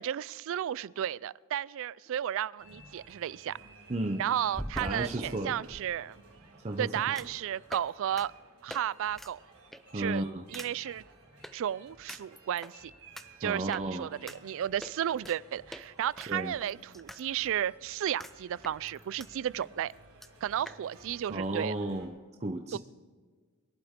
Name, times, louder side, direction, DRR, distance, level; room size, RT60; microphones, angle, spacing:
voice 1, 0.0-3.6 4.2-6.2 6.8-8.3 8.6-9.4 9.9-10.2 10.5-11.0 11.5-12.9 13.4-19.9 20.4-21.7 22.7-22.8, right 10 dB, 65° right, 23 dB, 0.3 m, -33 dB
sound 1, 2.1-2.2 4.5-5.8 7.2-7.4 7.7-7.9 8.2-8.3 8.7-8.8 9.1-9.3 9.7-10.0 10.5-10.7 11.4-11.5 12.1-12.7 13.2-13.3 13.7-13.8 14.3-14.4 14.8-15.4 15.7-15.8 16.2-17.2 17.5-17.6 18.2-18.3 18.6-19.3 19.6-19.7 19.9-20.0 20.2-20.3 20.7-20.8, equal, ahead, 0.5 m, -43 dB
sound 2, 2.6-22.1, right 2 dB, 90° right, 4.1 m, -56 dB
voice 2, 3.9-4.2 4.8-5.6 6.6-7.2 9.9-10.4 13.4-14.1 16.3-16.5 21.3-22.8, right 1 dB, 30° right, 4 dB, 0.7 m, -34 dB
22.5 x 11.5 x 3.7 m, 1.5 s
head